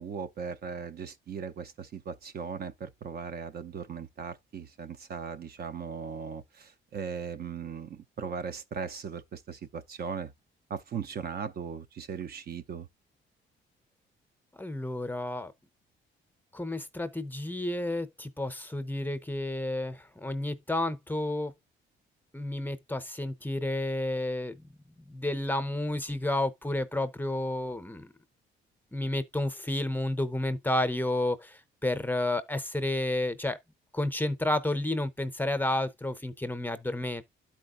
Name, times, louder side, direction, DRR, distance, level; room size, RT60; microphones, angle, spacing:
voice 1, 0.0-10.3 10.7-12.9, right 6 dB, 50° right, 0.6 m, -38 dB
voice 2, 14.6-15.5 16.5-21.5 22.3-24.6 25.1-28.1 28.9-33.6 33.9-37.2, left 1 dB, 10° left, 0.7 m, -31 dB
12.0 x 4.4 x 2.4 m
cardioid pair, 90°, 20 cm